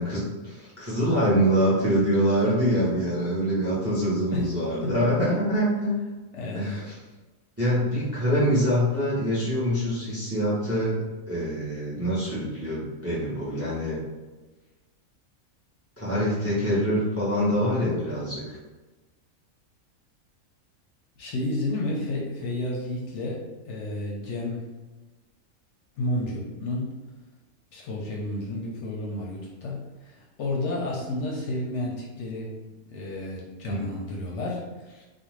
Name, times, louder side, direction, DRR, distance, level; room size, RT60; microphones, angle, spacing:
voice 1, 0.0-5.9 6.5-6.9 7.6-14.0 16.0-18.4 33.7-33.9, equal, 15° right, -8 dB, 0.5 m, -25 dB
voice 2, 4.8-5.4 6.3-6.8 21.2-24.7 26.0-27.0 27.7-32.5 32.9-35.0, left 1 dB, 70° left, -3 dB, 0.8 m, -31 dB
2.5 x 2.3 x 3.1 m, 1.2 s
omnidirectional pair, 1.4 m